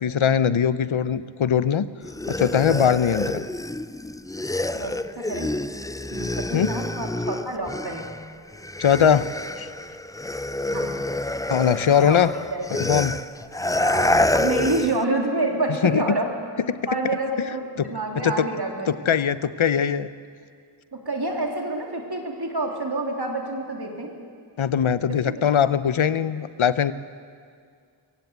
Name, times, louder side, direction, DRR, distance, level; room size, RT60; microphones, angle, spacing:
voice 1, 0.0-1.9 2.3-3.4 6.5-6.7 8.8-9.3 9.6-9.7 11.5-12.3 12.8-13.2 15.8-16.0 16.7-16.9 17.8-17.9 18.2-18.5 18.9-20.1 24.6-26.9, left 8 dB, 80° left, 15 dB, 0.7 m, -21 dB
sound 1, 2.0-8.2 8.5-15.0, left 1 dB, 10° left, 0.4 m, -27 dB
voice 2, 4.7-5.5 6.1-8.1 10.7-11.0 12.0-12.2 12.5-12.9 13.7-16.3 16.9-18.9 20.9-24.1 25.1-25.3 26.1-26.2, right 2 dB, 55° right, 1 dB, 3.3 m, -28 dB
23.5 x 16.0 x 8.1 m, 2.2 s
wide cardioid pair, 45°, 47 cm